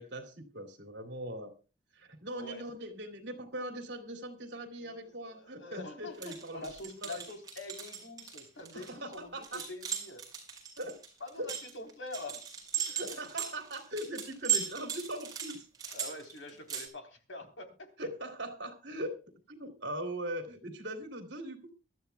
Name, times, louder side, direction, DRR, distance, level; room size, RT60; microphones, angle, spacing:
voice 1, 0.0-1.5 1.9-7.2 8.7-9.6 10.8-11.0 11.4-11.5 12.9-15.6 18.0-19.2 19.5-21.7, right 1 dB, 60° right, 7 dB, 2.9 m, -40 dB
voice 2, 2.3-2.6 4.8-10.2 11.2-12.4 12.8-13.2 15.9-17.9, left 2 dB, 75° left, 5 dB, 3.7 m, -45 dB
sound 1, 6.1-16.9, right 9 dB, 20° right, 4.7 m, -37 dB
24.0 x 12.5 x 2.3 m, 0.33 s
head